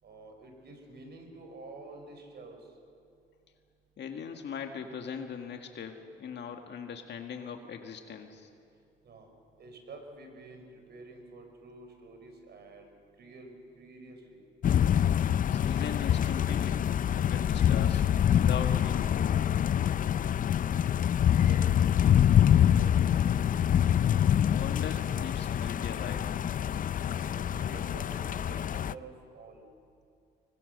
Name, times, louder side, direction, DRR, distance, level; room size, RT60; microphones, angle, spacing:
voice 1, 0.0-2.7 9.0-9.3 9.6-12.9 13.2-14.4 20.6-20.8 21.2-23.1 27.1-29.6, right 2 dB, 55° right, 4 dB, 4.9 m, -49 dB
voice 2, 4.0-8.5 15.5-16.9 17.1-18.1 18.3-19.6 24.5-26.4, left 6 dB, 60° left, 4 dB, 1.9 m, -40 dB
sound 1, 14.6-28.9, left 10 dB, 45° left, 0.5 m, -25 dB
25.0 x 22.5 x 6.7 m, 2.4 s
cardioid pair, 90°, 20 cm